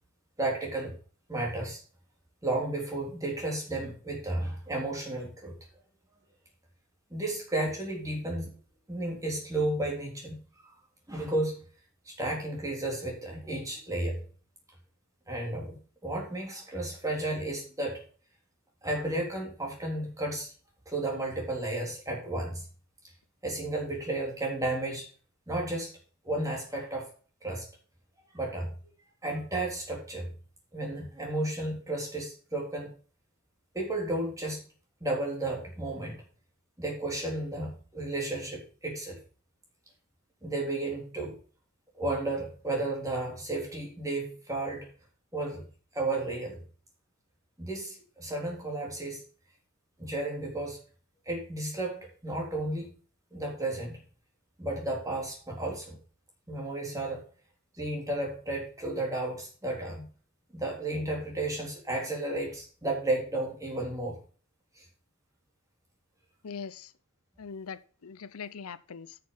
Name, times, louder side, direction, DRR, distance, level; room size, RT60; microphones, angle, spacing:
voice 1, 0.4-1.0 1.3-1.8 2.4-5.5 7.1-8.5 8.9-10.4 11.1-11.6 12.1-14.2 15.3-18.0 18.8-20.5 20.9-22.7 23.4-25.1 25.5-25.9 26.2-27.1 27.4-27.7 28.3-28.7 29.2-30.3 30.7-32.9 33.7-34.6 35.0-36.2 36.8-39.2 40.4-41.3 42.0-44.9 45.3-45.6 45.9-46.6 47.6-49.2 50.0-50.8 51.3-52.9 53.3-54.0 54.6-56.0 56.5-57.2 57.8-60.1 60.5-64.2 64.8-64.9, right 2 dB, 15° right, -1 dB, 3.5 m, -33 dB
voice 2, 66.4-66.9 67.4-69.2, left 6 dB, 85° left, 16 dB, 0.6 m, -41 dB
9.6 x 6.8 x 5.6 m, 0.40 s
head